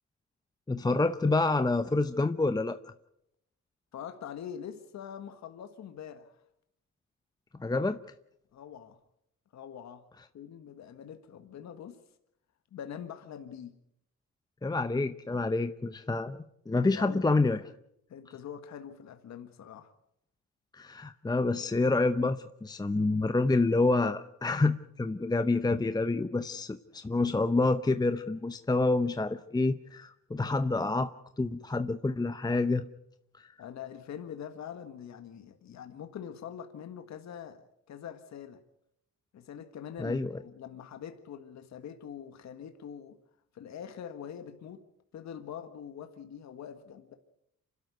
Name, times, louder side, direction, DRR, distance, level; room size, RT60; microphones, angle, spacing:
voice 1, 0.7-2.8 7.6-8.0 14.6-17.6 20.7-31.1 31.4-32.8 33.3-33.5 40.0-40.3, left 3 dB, 15° left, 10 dB, 0.8 m, -28 dB
voice 2, 3.9-6.4 8.5-9.0 9.5-10.0 10.3-12.0 12.7-13.7 17.0-17.4 18.1-19.9 33.6-38.6 39.3-43.2 43.5-44.8 45.1-47.2, left 8 dB, 65° left, 8 dB, 1.6 m, -44 dB
26.5 x 12.5 x 9.3 m, 0.78 s
cardioid pair, 90°, 30 cm